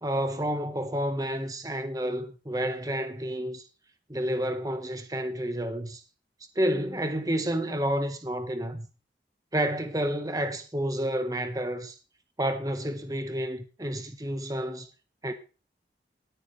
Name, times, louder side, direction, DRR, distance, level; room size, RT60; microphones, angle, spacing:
voice 1, 0.0-3.6 4.1-6.0 6.5-8.9 9.5-12.0 12.4-14.9 15.2-15.3, equal, 20° right, 1.4 m, -30 dB
18.0 x 9.5 x 3.3 m
head